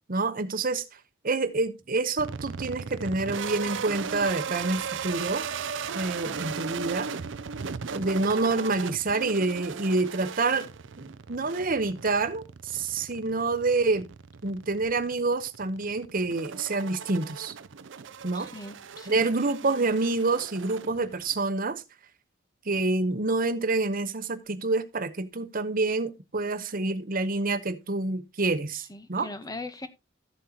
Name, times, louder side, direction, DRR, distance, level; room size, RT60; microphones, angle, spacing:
voice 1, 0.1-0.8 1.2-5.5 5.9-7.1 7.9-10.7 11.0-14.1 14.4-17.5 18.2-18.5 19.1-21.8 22.7-29.3, right 3 dB, 45° right, 1.0 m, -27 dB
sound 1, 2.2-21.4, right 6 dB, 65° right, 0.5 m, -37 dB
voice 2, 18.3-19.2 28.9-29.9, left 2 dB, 20° left, 0.9 m, -40 dB
14.0 x 7.6 x 2.9 m
head